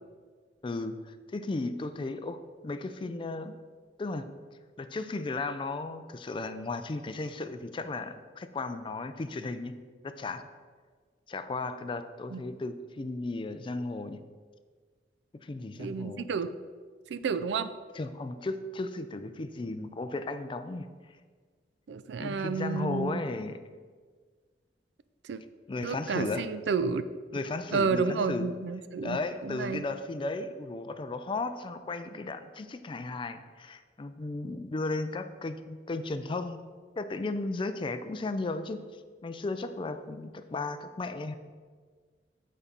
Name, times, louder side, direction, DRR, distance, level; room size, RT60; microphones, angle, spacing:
voice 1, 0.6-3.6 4.0-4.3 4.8-9.7 10.0-10.5 11.3-14.2 15.4-16.3 17.9-20.9 22.2-23.6 25.7-26.5 27.3-28.5 29.0-36.6 37.0-38.8 39.2-41.4, left 3 dB, 30° left, 10 dB, 0.3 m, -35 dB
voice 2, 15.8-16.5 17.1-17.7 21.9-23.2 25.3-25.4 25.8-27.0 27.7-29.8, right 5 dB, 70° right, 13 dB, 0.3 m, -31 dB
7.0 x 4.2 x 5.2 m, 1.6 s
head